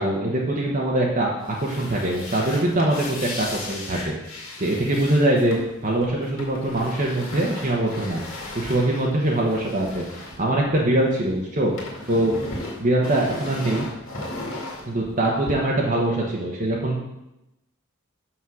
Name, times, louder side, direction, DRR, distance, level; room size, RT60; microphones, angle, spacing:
voice 1, 0.0-1.3 1.6-5.6 5.8-8.2 8.5-11.7 12.1-12.4 12.8-13.9 14.8-17.0, right 1 dB, 35° right, -3 dB, 1.0 m, -23 dB
sound 1, 1.4-11.2 11.5-15.5, left 2 dB, 60° left, 2.1 m, -36 dB
6.3 x 5.9 x 6.3 m, 0.90 s
head